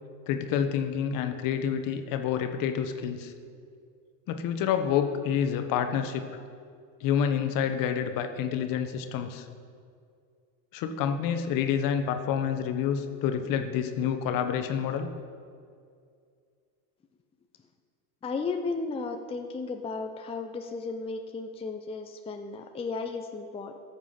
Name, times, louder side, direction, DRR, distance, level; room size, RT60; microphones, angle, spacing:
voice 1, 0.3-3.3 4.3-6.3 7.0-9.5 10.7-15.1, left 8 dB, 50° left, 7 dB, 1.3 m, -28 dB
voice 2, 18.2-23.7, left 4 dB, 15° left, 5 dB, 0.6 m, -34 dB
14.0 x 7.4 x 5.8 m, 2.3 s
supercardioid pair, 110°, 41 cm